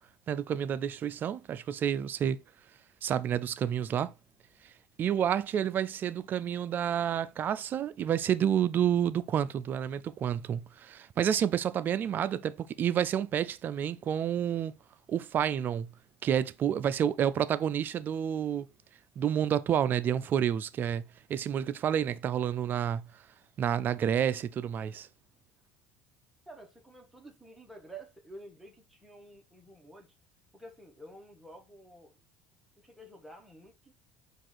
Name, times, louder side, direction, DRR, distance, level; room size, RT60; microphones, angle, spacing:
voice 1, 0.3-2.4 3.0-4.1 5.0-14.7 15.1-15.9 16.2-18.7 19.2-23.1 23.6-25.1, right 9 dB, 35° right, 0.3 m, -29 dB
voice 2, 26.5-30.1 30.5-32.2 32.8-34.0, right 1 dB, 5° right, 1.0 m, -50 dB
4.8 x 2.4 x 3.8 m
cardioid pair, 120°, 5 cm